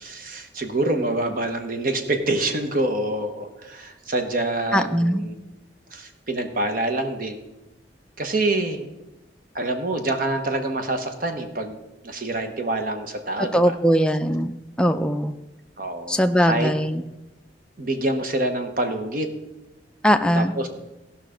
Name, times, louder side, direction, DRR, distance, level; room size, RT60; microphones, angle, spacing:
voice 1, 0.0-5.4 5.9-7.5 8.2-8.9 9.5-11.8 12.0-13.7 15.8-16.7 17.8-19.3 20.3-20.7, right 2 dB, 50° right, 6 dB, 1.0 m, -26 dB
voice 2, 4.7-5.2 13.5-14.5 14.8-15.3 16.1-17.0 20.0-20.5, equal, 5° left, 6 dB, 0.4 m, -20 dB
15.5 x 5.7 x 5.0 m, 0.98 s
head